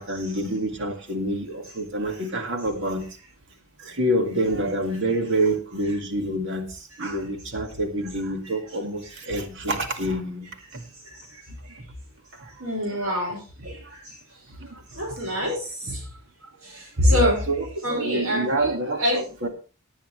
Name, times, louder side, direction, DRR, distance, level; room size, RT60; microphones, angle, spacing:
voice 1, 0.0-3.0 3.8-10.8 12.3-12.5 12.9-13.2 13.6-13.8 14.7-15.2 17.0-19.5, right 1 dB, 55° right, 5 dB, 2.1 m, -27 dB
voice 2, 12.6-14.2 14.9-16.0 16.6-17.4 17.8-19.2, left 1 dB, 85° right, -3 dB, 5.8 m, -26 dB
18.5 x 8.7 x 3.2 m, 0.35 s
head